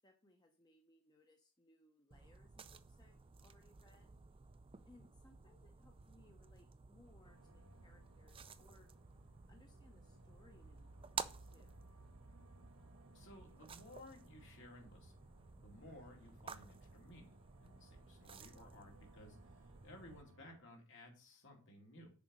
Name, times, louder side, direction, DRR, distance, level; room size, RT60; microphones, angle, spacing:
voice 1, 0.0-4.1 4.9-8.9 9.5-11.9, left 1 dB, 20° left, 3 dB, 0.8 m, -68 dB
sound 1, 2.1-20.2, right 6 dB, 25° right, 0.4 m, -53 dB
sound 2, 7.2-20.6, equal, 70° right, 1.3 m, -66 dB
voice 2, 13.1-15.2 15.5-22.1, left 1 dB, 60° left, 1 dB, 2.5 m, -58 dB
Sigh, 15.8-16.3, right 2 dB, 50° right, 0.8 m, -68 dB
6.8 x 4.8 x 6.2 m, 0.38 s
head